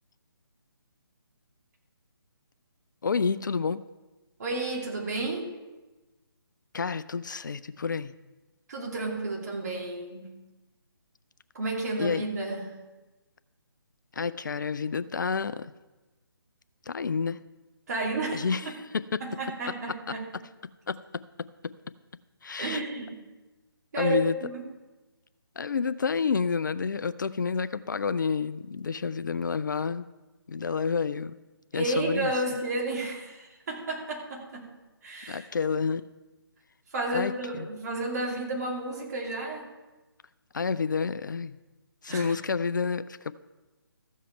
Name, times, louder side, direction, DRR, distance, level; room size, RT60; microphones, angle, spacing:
voice 1, 3.0-3.8 6.7-8.1 12.0-12.2 14.1-15.7 16.9-17.4 18.3-18.6 18.9-19.2 20.9-21.0 22.4-22.8 24.0-24.4 25.6-30.0 30.5-31.3 31.7-32.3 35.3-36.0 37.1-37.3 37.6-37.7 40.5-41.6 42.0-43.3, left 5 dB, 55° left, 14 dB, 0.4 m, -29 dB
voice 2, 4.4-5.5 8.7-10.3 11.5-12.7 17.9-18.5 19.2-20.3 22.6-23.1 23.9-24.6 31.7-34.7 35.0-35.5 36.9-39.7 42.1-42.4, right 2 dB, 45° right, -1 dB, 2.8 m, -32 dB
14.0 x 7.4 x 4.6 m, 1.1 s
figure-of-eight pair, 145°, 13 cm